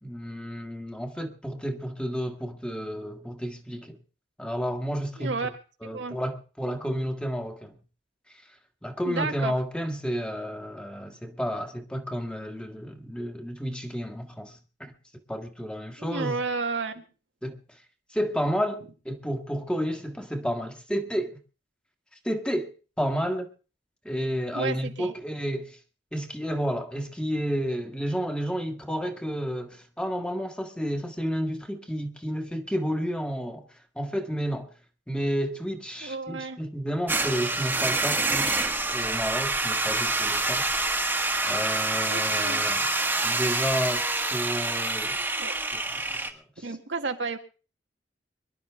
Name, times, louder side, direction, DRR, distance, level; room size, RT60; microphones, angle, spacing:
voice 1, 0.0-4.0 4.4-5.3 5.8-7.8 8.8-14.9 15.3-16.4 17.4-17.6 18.1-21.4 22.2-22.7 23.0-23.5 24.0-25.8 26.1-33.6 33.9-34.7 35.1-40.7 41.4-42.9 43.2-45.2 45.7-45.8 46.3-46.6, equal, 5° left, 1.6 m, -31 dB
voice 2, 5.2-5.5 5.9-6.2 9.0-9.5 16.0-17.0 24.5-25.1 36.0-36.6 42.1-42.6 45.4-45.6 46.6-47.4, right 4 dB, 85° right, 1.8 m, -32 dB
sound 1, 37.1-46.3, right 2 dB, 10° right, 1.4 m, -27 dB
24.5 x 11.5 x 3.4 m
head